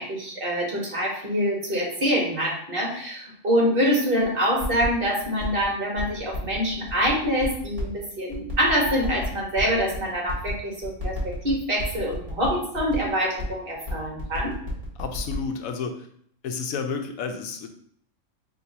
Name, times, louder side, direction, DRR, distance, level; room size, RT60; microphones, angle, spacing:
voice 1, 0.0-14.5, equal, 40° right, -2 dB, 1.4 m, -25 dB
sound 1, 4.2-4.3 4.6-5.6 6.0-8.0 8.3-10.5 10.8-13.1 13.4-13.5 13.7-15.3, left 5 dB, 25° right, 1.6 m, -35 dB
voice 2, 15.0-16.1 16.4-17.7, left 5 dB, 80° left, 6 dB, 1.0 m, -31 dB
5.6 x 3.0 x 2.7 m, 0.65 s
omnidirectional pair, 1.5 m